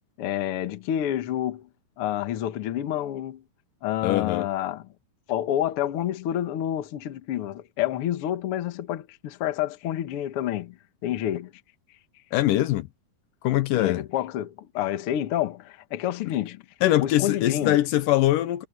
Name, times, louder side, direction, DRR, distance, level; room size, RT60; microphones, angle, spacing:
voice 1, 0.2-1.7 2.0-3.4 3.8-4.9 5.3-10.8 11.0-11.5 13.8-16.6 17.0-17.8, left 12 dB, 60° left, 1.5 m, -28 dB
voice 2, 4.0-4.5 12.3-12.9 13.4-14.0 16.8-18.7, left 14 dB, 80° left, 2.3 m, -22 dB
omnidirectional pair, 4.0 m